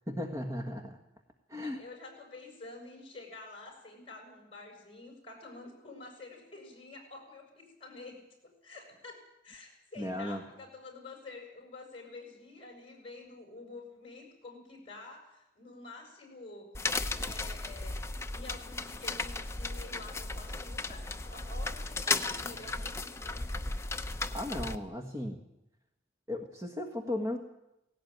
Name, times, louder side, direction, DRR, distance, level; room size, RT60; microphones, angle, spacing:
voice 1, 0.1-1.0 1.5-1.8 10.0-10.4 24.3-25.4 26.3-27.4, left 1 dB, 15° right, 3 dB, 1.5 m, -35 dB
voice 2, 1.5-8.2 8.6-16.7 17.1-18.0 18.3-23.4, left 3 dB, 30° left, 1 dB, 6.9 m, -49 dB
sound 1, 16.7-24.8, left 3 dB, 15° left, 0.8 m, -35 dB
18.0 x 17.0 x 9.2 m, 0.88 s
head